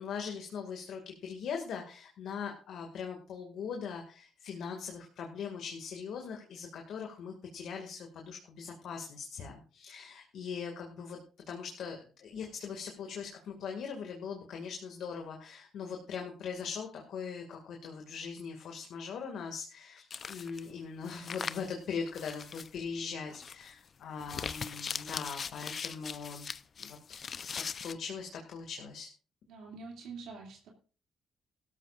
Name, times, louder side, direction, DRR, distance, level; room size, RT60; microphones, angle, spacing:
voice 1, 0.0-11.2 11.5-26.5 26.8-27.2 27.5-29.1, left 6 dB, 75° left, 2 dB, 2.1 m, -41 dB
sound 1, 20.1-20.7 21.0-21.7 22.1-22.7 23.3-23.7 24.2-27.9, left 6 dB, 45° left, 0.6 m, -40 dB
voice 2, 29.5-30.7, right 4 dB, 85° right, 0 dB, 2.6 m, -45 dB
17.0 x 13.5 x 2.5 m, 0.36 s
cardioid pair, 90°, 0 cm